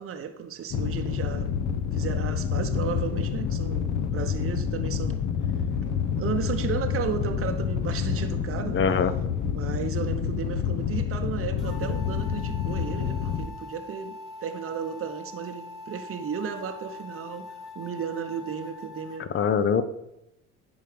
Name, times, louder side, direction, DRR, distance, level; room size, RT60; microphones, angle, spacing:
voice 1, 0.0-1.5 1.9-5.2 5.8-5.9 6.2-8.9 9.4-19.3, right 7 dB, 35° right, 6 dB, 0.9 m, -34 dB
sound 1, 0.7-13.5, left 7 dB, 55° left, 1.0 m, -28 dB
voice 2, 8.7-9.1 19.2-19.8, left 6 dB, 35° left, 12 dB, 0.8 m, -23 dB
sound 2, 11.6-19.2, left 3 dB, ahead, 1.6 m, -43 dB
10.5 x 4.0 x 5.1 m, 0.85 s
supercardioid pair, 85°, 37 cm